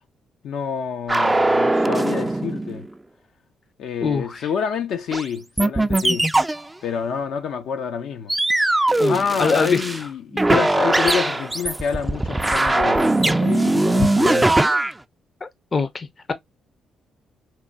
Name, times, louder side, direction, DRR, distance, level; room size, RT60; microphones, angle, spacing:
voice 1, 0.4-2.8 3.8-6.3 6.8-8.3 9.1-14.6, left 7 dB, 75° left, 0.7 m, -27 dB
sound 1, 1.1-2.9 5.1-5.2 5.6-6.7 8.3-10.0 10.3-14.9, right 2 dB, 10° right, 0.4 m, -20 dB
voice 2, 4.0-4.4 9.0-9.8 15.4-16.3, left 4 dB, 35° left, 0.6 m, -24 dB
4.4 x 2.2 x 2.4 m
cardioid pair, 90°, 0 cm